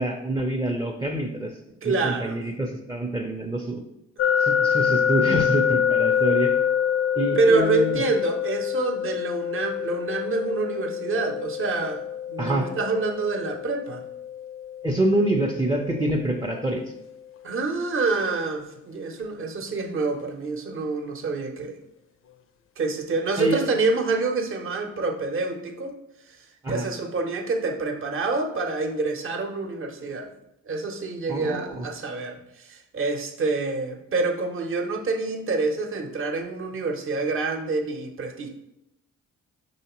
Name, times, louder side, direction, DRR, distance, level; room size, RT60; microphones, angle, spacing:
voice 1, 0.0-1.5 1.8-3.8 4.4-6.5 7.1-8.0 12.4-12.7 14.8-16.8 23.4-23.6 26.6-26.9 31.3-31.9, right 1 dB, 15° right, 1 dB, 0.5 m, -26 dB
voice 2, 1.8-2.4 7.3-14.0 17.4-21.8 22.8-25.9 26.7-30.3 30.7-38.5, right 3 dB, 45° right, 4 dB, 0.8 m, -27 dB
sound 1, 4.2-17.1, left 8 dB, 45° left, 0.4 m, -26 dB
5.5 x 3.2 x 3.0 m, 0.85 s
cardioid pair, 90°, 30 cm